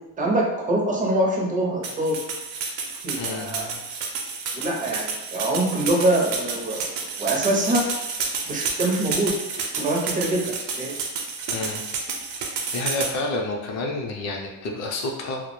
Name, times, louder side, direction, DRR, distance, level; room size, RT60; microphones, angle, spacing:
voice 1, 0.2-2.2 3.0-3.7 4.5-6.8 7.2-7.8 8.5-9.3 9.8-10.4 10.8-10.9, right 1 dB, 20° right, -2 dB, 0.4 m, -24 dB
sound 1, 1.8-13.1, right 5 dB, 70° right, 0.6 m, -30 dB
voice 2, 3.2-3.8 11.5-11.8 12.7-15.4, left 2 dB, 40° left, 1 dB, 0.5 m, -29 dB
2.2 x 2.1 x 2.9 m, 1.0 s
cardioid pair, 130°, 43 cm